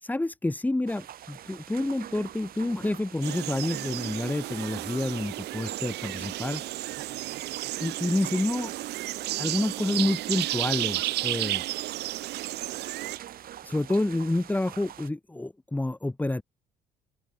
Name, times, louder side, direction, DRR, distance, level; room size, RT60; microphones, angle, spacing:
voice 1, 0.0-6.6 7.8-8.7 9.4-11.6 13.6-16.4, left 2 dB, 10° left, 2.7 m, -28 dB
sound 1, 0.9-15.1, right 11 dB, 60° right, 6.3 m, -45 dB
sound 2, 3.2-13.2, right 17 dB, 80° right, 2.6 m, -33 dB
open air
cardioid pair, 110°, 17 cm